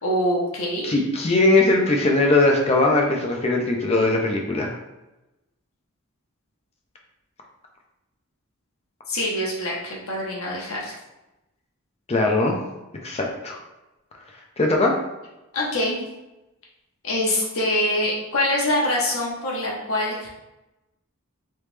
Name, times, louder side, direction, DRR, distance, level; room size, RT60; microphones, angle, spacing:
voice 1, 0.0-0.9 9.1-10.9 15.5-16.0 17.0-20.3, left 1 dB, 65° left, -4 dB, 1.0 m, -24 dB
voice 2, 0.8-4.7 12.1-12.6 13.0-13.6 14.6-14.9, left 2 dB, 30° left, 0 dB, 0.5 m, -20 dB
3.3 x 3.0 x 3.2 m, 0.99 s
head